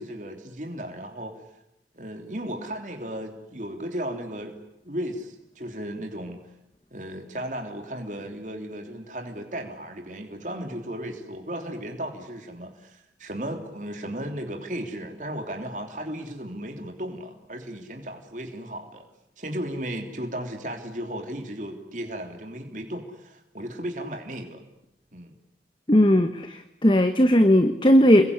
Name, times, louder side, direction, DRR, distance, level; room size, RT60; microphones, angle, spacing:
voice 1, 0.0-1.3 1.9-4.6 4.8-6.4 6.9-19.0 19.4-24.6 25.1-25.3, right 1 dB, 45° right, 4 dB, 3.2 m, -35 dB
voice 2, 25.9-28.3, equal, 25° left, 9 dB, 1.2 m, -18 dB
28.0 x 22.0 x 9.8 m, 0.81 s
head